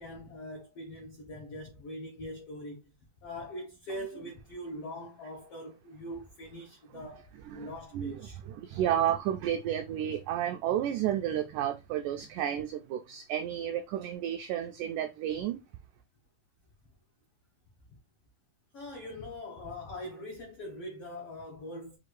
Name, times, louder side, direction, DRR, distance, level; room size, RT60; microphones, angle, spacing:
voice 1, 0.0-2.9 3.2-8.4 18.7-22.0, left 1 dB, 80° left, 1.3 m, -42 dB
voice 2, 7.5-8.1 8.5-15.6, right 10 dB, 90° right, 1.8 m, -31 dB
6.5 x 2.5 x 3.1 m
omnidirectional pair, 4.2 m